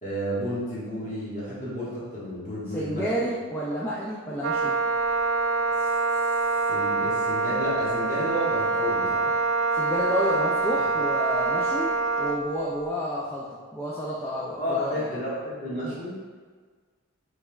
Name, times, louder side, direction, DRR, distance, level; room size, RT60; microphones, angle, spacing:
voice 1, 0.0-3.1 6.7-9.3 14.6-16.2, equal, 35° left, -9 dB, 1.4 m, -31 dB
voice 2, 2.7-4.7 9.7-11.9 12.2-13.4 13.7-15.1, equal, 10° left, -7 dB, 0.3 m, -30 dB
Wind instrument woodwind instrument, 4.4-12.5, right 3 dB, 75° right, 0.3 m, -25 dB
5.0 x 3.3 x 2.3 m, 1.5 s
head